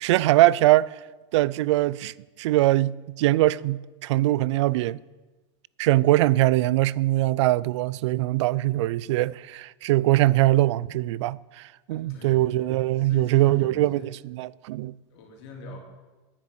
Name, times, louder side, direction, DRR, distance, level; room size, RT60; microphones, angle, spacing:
voice 1, 0.0-0.9 1.3-2.1 2.4-5.0 5.8-14.9, right 16 dB, 85° right, 0.4 m, -22 dB
voice 2, 11.9-12.7 13.0-14.2 15.1-15.8, left 2 dB, 70° left, 3.2 m, -43 dB
10.0 x 7.2 x 8.8 m
supercardioid pair, 135°, 15 cm